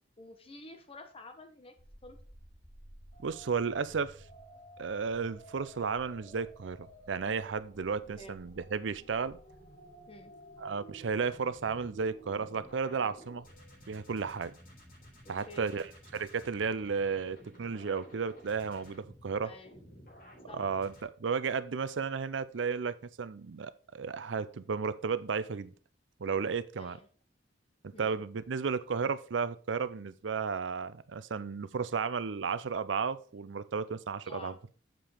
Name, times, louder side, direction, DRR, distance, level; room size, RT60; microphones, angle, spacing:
voice 1, 0.2-1.7 2.0-2.2 8.2-8.4 10.1-10.3 15.2-15.7 19.4-19.8 20.5-20.6 26.8-27.1 27.9-28.2 34.3-34.6, left 2 dB, 30° left, 1.1 m, -50 dB
sound 1, 1.8-21.0, equal, 50° left, 4.0 m, -54 dB
voice 2, 3.2-4.2 4.8-9.4 10.6-13.5 13.9-14.5 15.3-19.5 20.5-25.7 26.2-27.0 28.0-34.5, right 5 dB, 80° right, 0.5 m, -33 dB
7.6 x 5.1 x 4.9 m
head